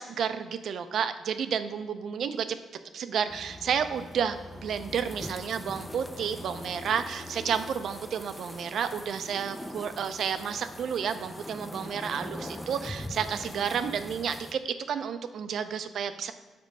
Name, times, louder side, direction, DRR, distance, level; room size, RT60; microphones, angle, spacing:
voice 1, 0.0-2.6 2.9-16.3, right 7 dB, 70° right, 10 dB, 0.4 m, -31 dB
sound 1, 3.3-14.5, left 1 dB, 10° left, 0.5 m, -42 dB
5.2 x 4.5 x 5.2 m, 1.4 s
supercardioid pair, 65°, 0 cm